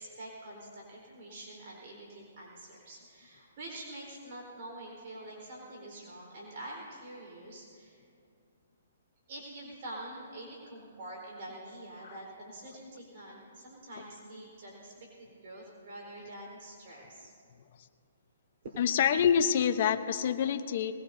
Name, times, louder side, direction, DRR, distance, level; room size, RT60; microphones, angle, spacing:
voice 1, 0.0-8.0 9.3-17.3 18.6-18.8, right 1 dB, 55° right, -3 dB, 4.1 m, -46 dB
voice 2, 18.8-20.9, left 8 dB, 50° left, 10 dB, 0.8 m, -26 dB
20.5 x 20.5 x 2.7 m, 2.4 s
hypercardioid pair, 135°, 0 cm